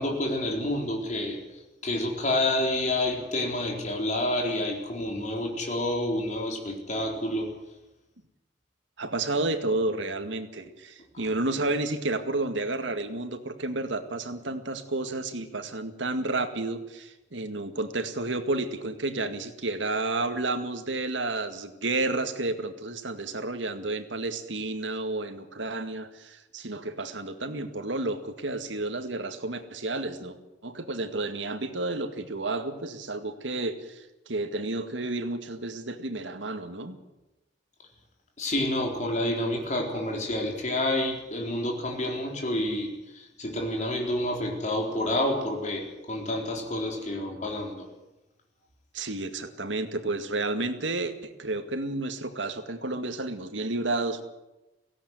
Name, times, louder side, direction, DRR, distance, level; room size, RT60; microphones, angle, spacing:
voice 1, 0.0-7.5 38.4-47.9, left 1 dB, 40° left, 1 dB, 4.1 m, -29 dB
voice 2, 9.0-30.4 30.6-37.0 48.9-54.2, right 2 dB, 90° right, 8 dB, 2.1 m, -31 dB
17.5 x 16.5 x 9.5 m, 1.0 s
head